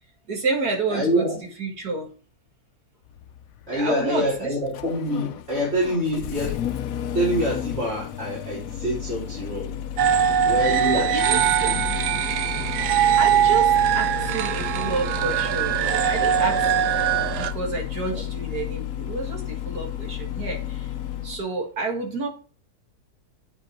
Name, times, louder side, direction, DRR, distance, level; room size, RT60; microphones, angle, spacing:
voice 1, 0.3-1.3 1.6-2.1 3.7-4.5 10.8-12.0 13.2-16.6 17.4-20.9 21.2-22.3, right 3 dB, 70° right, 2.6 m, -29 dB
voice 2, 0.9-1.4 3.7-6.8 7.1-9.8 10.4-11.8 13.3-13.4 18.1-18.2, equal, 40° right, 3.5 m, -26 dB
Engine starting, 3.1-21.4, left 10 dB, 65° left, 1.0 m, -32 dB
sound 1, 10.0-17.5, right 9 dB, 85° right, 1.3 m, -21 dB
8.3 x 5.6 x 4.4 m
omnidirectional pair, 1.7 m